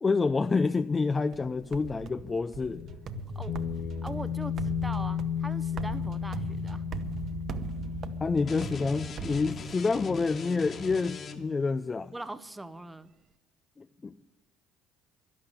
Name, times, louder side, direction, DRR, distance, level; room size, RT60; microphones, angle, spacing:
voice 1, 0.0-2.8 8.2-12.1 13.8-14.2, left 4 dB, 25° left, 10 dB, 0.5 m, -28 dB
sound 1, 1.3-10.1, right 8 dB, 55° right, 0.9 m, -40 dB
sound 2, 2.6-10.0, left 8 dB, 60° left, 1.1 m, -34 dB
voice 2, 4.0-6.8 12.1-13.1, right 1 dB, 10° right, 12 dB, 0.9 m, -41 dB
sound 3, 8.4-11.7, left 5 dB, 45° left, 1.9 m, -41 dB
12.0 x 11.5 x 9.7 m, 1.0 s
supercardioid pair, 75°, 0 cm